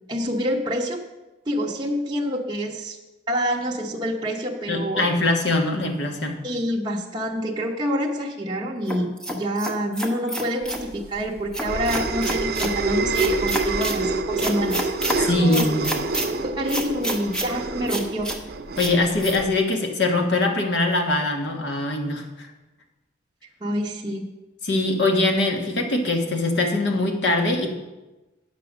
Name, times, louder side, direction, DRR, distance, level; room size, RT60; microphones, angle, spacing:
voice 1, 0.1-1.0 1.5-3.0 3.3-5.1 6.4-14.9 15.4-15.6 16.4-18.3 23.6-24.3, equal, 25° right, -2 dB, 0.8 m, -27 dB
voice 2, 4.7-6.4 15.2-15.9 18.8-22.5 24.6-27.7, left 2 dB, 65° left, 2 dB, 1.4 m, -22 dB
sound 1, 8.9-10.9 11.5-12.7 13.1-14.0 14.4-15.2 15.5-16.3 16.7-17.5 17.9-18.4 18.8-18.9 19.2-19.4, equal, 5° left, 0.8 m, -28 dB
sound 2, 10.8-19.6, right 3 dB, 50° right, 0.5 m, -27 dB
8.8 x 6.1 x 6.0 m, 1.1 s
head